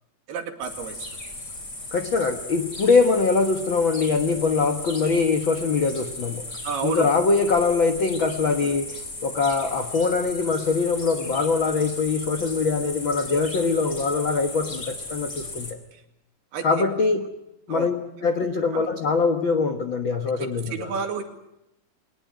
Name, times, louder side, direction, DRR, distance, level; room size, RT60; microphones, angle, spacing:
voice 1, 0.3-1.0 6.6-7.1 8.6-8.7 15.9-16.0 16.5-16.8 17.7-17.9 18.7-18.8 20.4-21.2, right 6 dB, 70° right, 6 dB, 4.3 m, -31 dB
sound 1, 0.6-15.7, left 2 dB, 20° left, 3.9 m, -36 dB
voice 2, 1.9-6.4 6.8-15.8 16.6-17.3 17.7-17.9 18.2-20.9, left 4 dB, 80° left, 7 dB, 1.1 m, -23 dB
22.5 x 19.5 x 9.3 m, 0.85 s
omnidirectional pair, 4.7 m